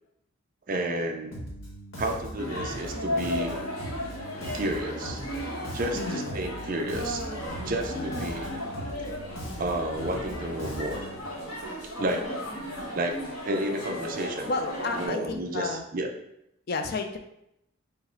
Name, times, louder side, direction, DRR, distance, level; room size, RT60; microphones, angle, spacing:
voice 1, 0.7-1.4 2.0-3.6 4.5-5.2 5.7-7.2 7.6-8.5 9.6-11.0 12.0-12.3 12.9-13.2 13.4-14.5 15.0-16.1, right 1 dB, 40° right, 3 dB, 0.5 m, -31 dB
Bass guitar, 1.3-11.2, equal, 65° left, 1.1 m, -40 dB
sound 1, 2.4-15.1, equal, 90° left, 1.1 m, -35 dB
voice 2, 5.9-6.4 7.9-8.4 14.5-15.8 16.7-17.2, left 3 dB, 45° left, 6 dB, 0.4 m, -32 dB
4.6 x 2.1 x 4.3 m, 0.82 s
head